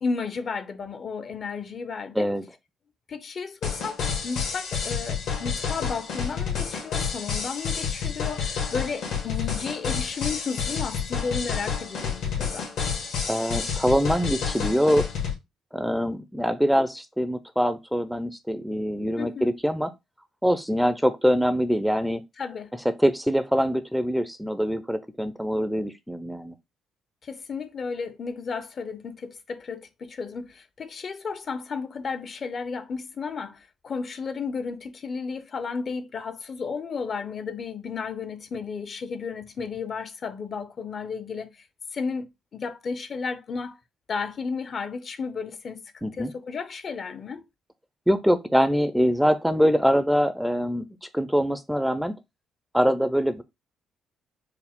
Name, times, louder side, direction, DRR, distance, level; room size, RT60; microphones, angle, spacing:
voice 1, 0.0-2.3 3.1-12.7 19.2-19.5 22.4-22.7 27.2-41.6 41.9-43.8 44.1-47.4, left 5 dB, 50° left, 0.6 m, -33 dB
sound 1, 3.6-15.3, left 6 dB, 80° left, 1.6 m, -29 dB
voice 2, 13.3-15.1 15.7-19.9 20.4-22.2 23.0-26.5 46.0-46.3 48.1-50.9 51.1-52.1 52.7-53.4, equal, ahead, 0.4 m, -24 dB
4.6 x 2.0 x 3.5 m
cardioid pair, 90°, 0 cm